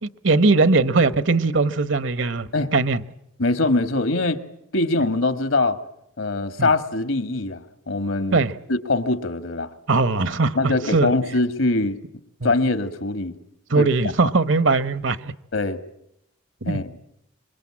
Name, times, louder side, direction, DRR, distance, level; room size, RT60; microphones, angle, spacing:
voice 1, 0.0-3.0 6.6-6.7 8.3-8.6 9.9-11.1 12.4-12.5 13.7-15.3 16.6-16.9, right 3 dB, 65° right, 1.0 m, -20 dB
voice 2, 3.4-4.4 4.7-5.8 6.2-8.4 8.7-9.7 10.5-12.0 12.4-13.3 13.8-13.9 15.5-15.8 16.7-16.9, left 2 dB, 75° left, 1.7 m, -23 dB
26.0 x 23.0 x 8.6 m
head